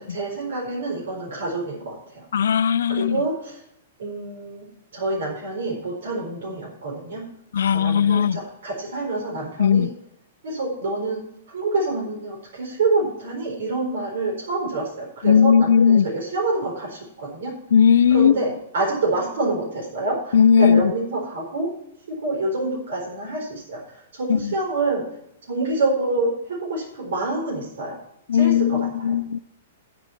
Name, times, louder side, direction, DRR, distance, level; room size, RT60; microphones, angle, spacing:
voice 1, 0.0-2.3 2.9-3.6 4.0-4.7 4.9-7.3 7.7-9.9 10.4-17.6 18.1-21.7 22.1-25.1 25.5-28.0 28.3-29.1, right 2 dB, 80° right, 4.2 m, -27 dB
voice 2, 2.3-3.2 7.5-8.4 9.6-9.9 15.2-16.1 17.7-18.3 20.3-20.9 24.3-24.5 28.3-29.4, left 7 dB, 80° left, 0.4 m, -17 dB
10.5 x 8.9 x 4.3 m
hypercardioid pair, 160°, 0 cm